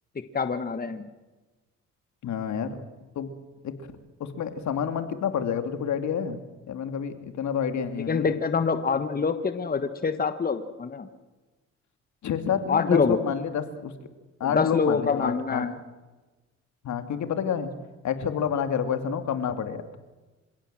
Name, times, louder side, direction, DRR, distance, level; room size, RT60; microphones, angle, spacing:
voice 1, 0.3-1.1 8.1-11.1 12.7-13.2 14.4-15.7, left 5 dB, 30° left, 10 dB, 1.5 m, -25 dB
voice 2, 2.2-2.8 3.2-3.3 3.6-3.7 4.2-6.4 6.7-8.4 12.2-13.9 14.4-15.7 16.8-17.7 18.0-19.8, left 7 dB, 70° left, 9 dB, 2.5 m, -29 dB
27.5 x 17.0 x 7.6 m, 1.2 s
cardioid pair, 90°, 30 cm